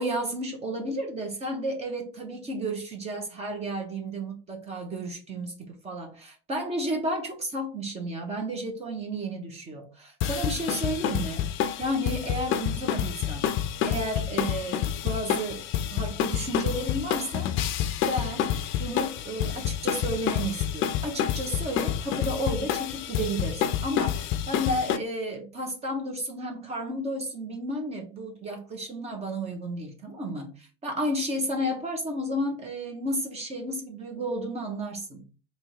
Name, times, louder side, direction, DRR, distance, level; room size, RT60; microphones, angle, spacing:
voice 1, 0.0-11.5 11.8-13.5 13.9-15.6 15.9-17.5 18.1-35.2, right 1 dB, 20° right, 1.0 m, -32 dB
sound 1, 10.2-25.0, left 10 dB, 40° left, 0.5 m, -28 dB
3.5 x 3.1 x 4.6 m
cardioid pair, 160°, 31 cm